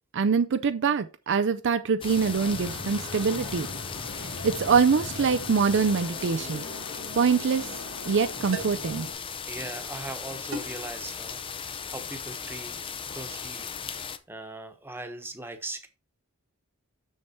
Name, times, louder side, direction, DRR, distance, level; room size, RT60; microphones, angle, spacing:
voice 1, 0.1-3.7 4.4-6.6 7.2-7.7 8.1-9.1, right 5 dB, 60° right, 0.5 m, -24 dB
sound 1, 2.0-14.2, left 6 dB, 25° left, 0.6 m, -37 dB
Fixed-wing aircraft airplane, 2.1-9.1, left 1 dB, 75° left, 2.6 m, -40 dB
sound 2, 8.5-8.9 10.5-10.9, right 2 dB, 90° right, 2.0 m, -37 dB
voice 2, 9.5-12.7 13.0-13.7 14.3-15.9, right 2 dB, 10° right, 1.2 m, -40 dB
6.7 x 6.5 x 4.4 m
head